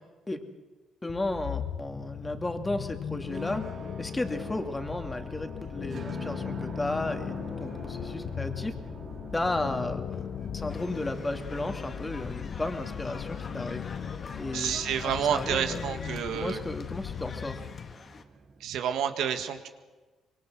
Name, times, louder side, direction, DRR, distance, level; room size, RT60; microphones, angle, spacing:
voice 1, 1.0-3.7 4.0-7.4 7.6-8.8 9.3-13.8 14.4-14.8 15.0-15.9 16.3-17.6, left 2 dB, 15° left, 6 dB, 2.5 m, -34 dB
sound 1, 1.1-18.0, left 8 dB, 60° left, 0.8 m, -38 dB
sound 2, 3.1-18.6, right 5 dB, 55° right, 2.4 m, -48 dB
sound 3, 10.7-18.2, left 4 dB, 45° left, 1.9 m, -46 dB
voice 2, 14.5-16.6 18.6-19.7, right 8 dB, 80° right, 7 dB, 1.8 m, -29 dB
25.5 x 21.5 x 6.3 m, 1.3 s
cardioid pair, 90°, 0 cm